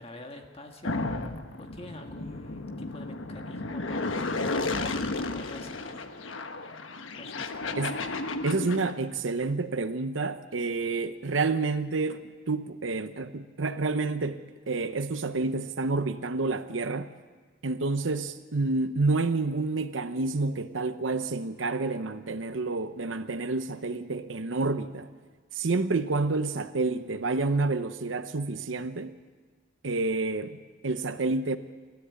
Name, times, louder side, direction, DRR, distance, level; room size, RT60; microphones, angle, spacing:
voice 1, 0.0-6.2 7.1-7.8, left 1 dB, 30° left, 1.6 m, -46 dB
sound 1, 0.8-8.9, left 2 dB, 85° left, 1.3 m, -33 dB
voice 2, 8.4-17.1 17.6-25.1 25.5-29.1 29.8-31.6, right 3 dB, 80° right, 0.8 m, -29 dB
28.0 x 13.0 x 8.4 m
head